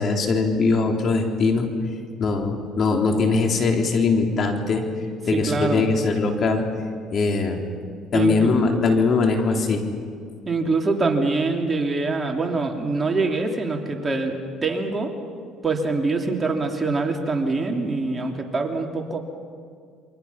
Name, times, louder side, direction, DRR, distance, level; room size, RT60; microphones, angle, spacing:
voice 1, 0.0-1.7 2.2-4.8 5.3-6.7 7.1-7.6 8.1-9.8, left 4 dB, 50° left, 3 dB, 3.6 m, -21 dB
voice 2, 5.3-5.9 8.1-8.5 10.5-15.1 15.6-19.2, right 3 dB, 25° right, 2 dB, 3.2 m, -24 dB
28.5 x 24.5 x 5.9 m, 2.2 s
supercardioid pair, 90°, 0 cm